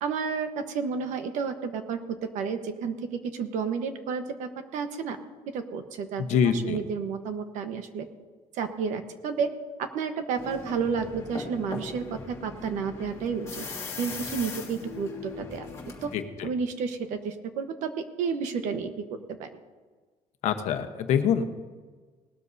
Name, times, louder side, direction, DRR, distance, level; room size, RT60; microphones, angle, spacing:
voice 1, 0.0-5.2 5.5-8.1 8.5-9.5 9.8-13.6 14.0-15.7 16.0-16.1 16.4-19.5, right 6 dB, 75° right, 8 dB, 1.2 m, -31 dB
voice 2, 6.2-6.8 16.1-16.5 20.4-21.4, left 7 dB, 65° left, 7 dB, 1.1 m, -25 dB
sound 1, 10.4-16.1, left 4 dB, 20° left, 1.9 m, -39 dB
19.0 x 12.5 x 2.7 m, 1.4 s
cardioid pair, 165°, 13 cm